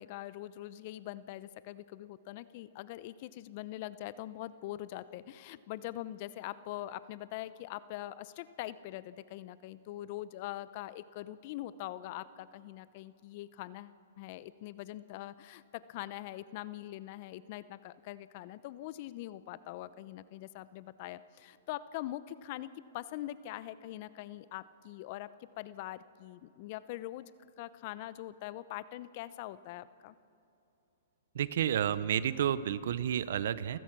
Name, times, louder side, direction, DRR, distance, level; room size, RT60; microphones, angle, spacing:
voice 1, 0.0-25.3 25.6-30.2, left 14 dB, 45° left, 16 dB, 0.8 m, -43 dB
voice 2, 31.3-33.8, right 9 dB, 70° right, 17 dB, 0.8 m, -30 dB
29.0 x 15.5 x 6.1 m, 2.9 s
hypercardioid pair, 135°, 0 cm